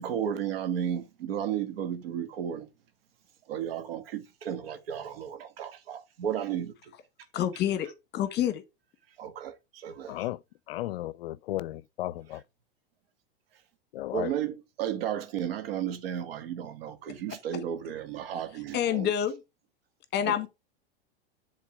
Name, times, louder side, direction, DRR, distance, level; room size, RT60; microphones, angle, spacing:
voice 1, 0.0-2.7 3.5-6.9 9.2-10.2 14.1-19.1 20.2-20.5, right 9 dB, 75° right, 1.4 m, -33 dB
voice 2, 7.3-8.6 18.7-19.4 20.1-20.5, left 10 dB, 35° left, 1.2 m, -28 dB
voice 3, 10.1-10.4 10.7-12.4 13.9-14.3, left 15 dB, 75° left, 0.5 m, -34 dB
7.3 x 3.7 x 4.8 m
hypercardioid pair, 110°, 30 cm